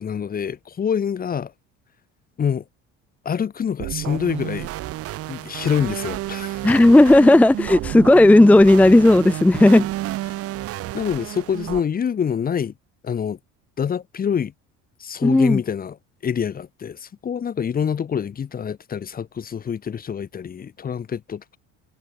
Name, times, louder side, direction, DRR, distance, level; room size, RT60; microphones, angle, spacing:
voice 1, 0.0-1.5 2.4-2.6 3.3-4.7 5.3-6.7 10.9-12.7 13.0-13.4 13.8-14.5 15.0-16.0 16.2-21.6, left 7 dB, 30° left, 2.0 m, -26 dB
sound 1, 3.8-11.8, right 15 dB, 50° right, 1.0 m, -31 dB
voice 2, 6.6-9.9 15.2-15.6, left 1 dB, 5° left, 0.6 m, -13 dB
cardioid pair, 135°, 30 cm